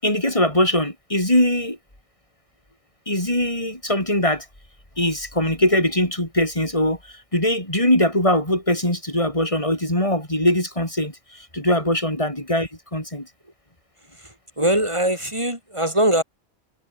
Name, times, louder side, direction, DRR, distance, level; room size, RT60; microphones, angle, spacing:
voice 1, 0.0-1.8 3.1-4.5 5.0-13.3, left 1 dB, 30° left, 7.8 m, -21 dB
voice 2, 14.1-16.2, right 1 dB, 25° right, 7.2 m, -22 dB
omnidirectional pair, 1.1 m